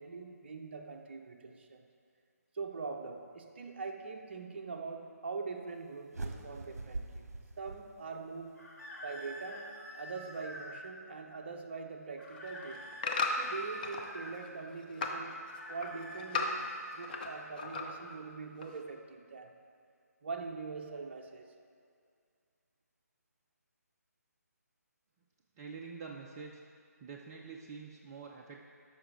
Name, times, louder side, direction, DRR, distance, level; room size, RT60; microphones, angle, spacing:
voice 1, 0.0-1.9 2.5-7.2 7.6-8.7 9.0-12.9 13.4-19.5 20.2-21.6, right 4 dB, 40° right, 4 dB, 0.7 m, -43 dB
sound 1, 6.1-8.5, right 2 dB, 60° right, 1.1 m, -43 dB
sound 2, 8.5-10.8 12.2-14.4 15.3-17.4, equal, 65° left, 1.8 m, -48 dB
sound 3, 12.2-14.1 14.5-15.2 15.6-17.3 17.6-18.1 18.6-18.7, left 3 dB, 30° left, 0.7 m, -35 dB
voice 2, 25.6-26.5 27.0-28.6, right 5 dB, 15° right, -1 dB, 0.4 m, -46 dB
13.0 x 5.9 x 3.8 m, 2.2 s
figure-of-eight pair, 145°, 9 cm